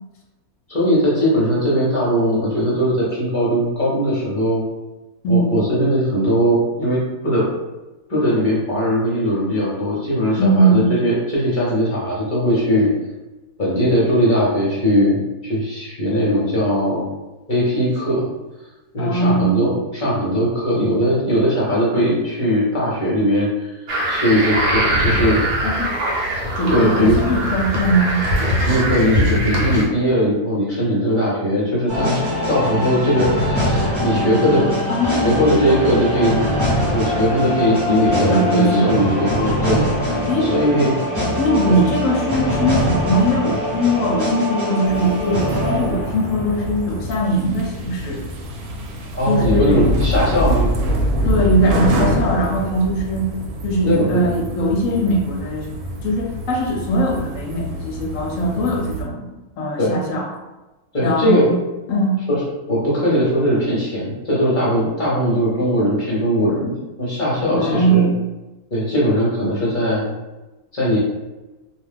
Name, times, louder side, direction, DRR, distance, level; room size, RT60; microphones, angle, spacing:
voice 1, 0.7-4.6 5.3-7.4 8.1-12.9 13.6-17.1 17.5-18.3 18.9-25.4 26.7-27.2 28.7-32.2 32.5-34.6 35.1-36.4 36.8-41.0 41.7-41.8 49.1-50.7 53.8-54.2 59.8-60.0 60.9-61.5 62.3-62.4 62.7-66.7 67.0-68.1 68.7-70.1 70.7-71.0, equal, 40° left, -7 dB, 0.8 m, -19 dB
voice 2, 5.2-5.6 10.4-10.9 19.0-19.6 25.6-26.0 26.6-28.2 34.9-35.3 38.3-38.9 40.3-40.8 41.4-48.3 49.3-49.9 51.2-53.3 53.6-55.7 56.0-60.3 61.0-61.5 61.9-62.2 67.5-68.2, right 1 dB, 70° left, 0 dB, 0.9 m, -20 dB
sound 1, 23.9-29.9, equal, 60° right, 0.9 m, -21 dB
sound 2, 31.9-47.1, left 1 dB, 15° right, 0.8 m, -22 dB
sound 3, 44.9-59.0, equal, 90° right, 1.1 m, -25 dB
2.4 x 2.3 x 3.4 m, 1.1 s
omnidirectional pair, 1.5 m